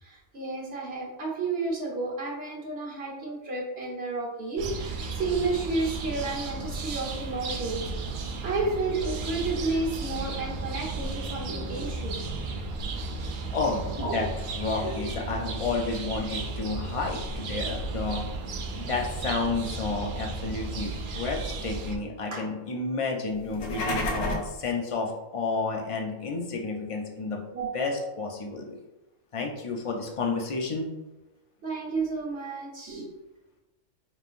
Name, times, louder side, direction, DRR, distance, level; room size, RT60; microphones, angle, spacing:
voice 1, 0.0-7.8 8.4-12.2 14.0-14.2 14.8-15.0 22.3-22.4 27.5-27.9 31.6-33.1, right 3 dB, 50° right, -3 dB, 1.3 m, -31 dB
sound 1, 4.6-22.0, right 3 dB, 70° right, 0.4 m, -34 dB
voice 2, 13.5-14.3 14.5-18.3 18.8-27.4 27.7-28.7 29.3-30.9, left 3 dB, 50° left, 1 dB, 0.4 m, -31 dB
sound 2, 23.4-24.6, left 2 dB, 85° left, 1.2 m, -30 dB
5.1 x 3.1 x 2.5 m, 1.0 s
omnidirectional pair, 1.4 m